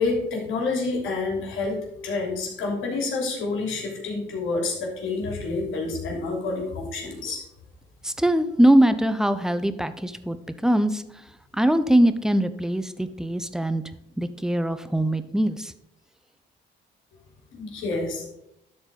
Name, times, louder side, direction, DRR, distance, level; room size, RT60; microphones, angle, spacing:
voice 1, 0.0-7.4 17.6-18.3, left 3 dB, 85° left, 0 dB, 3.2 m, -28 dB
voice 2, 8.0-10.4 10.6-11.0 11.5-13.8 14.2-15.7, right 1 dB, 5° right, 12 dB, 0.7 m, -22 dB
12.0 x 4.4 x 5.2 m, 0.81 s
cardioid pair, 90°, 20 cm